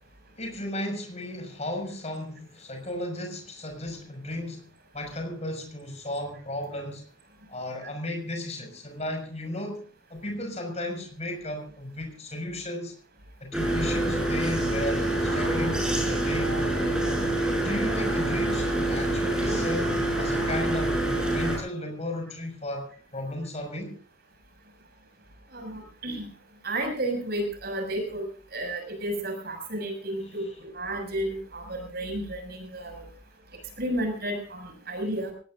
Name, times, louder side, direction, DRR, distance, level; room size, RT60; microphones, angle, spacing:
voice 1, 0.4-4.6 4.9-7.0 7.5-12.9 13.4-16.9 17.6-24.0 30.2-30.6, left 1 dB, 30° left, 4 dB, 6.0 m, -35 dB
sound 1, 13.5-21.6, right 1 dB, 5° right, 6.2 m, -26 dB
voice 2, 25.5-26.3 26.6-28.3 28.5-33.1 33.8-35.3, right 1 dB, 50° right, 5 dB, 6.5 m, -32 dB
24.0 x 18.5 x 2.6 m, 0.41 s
head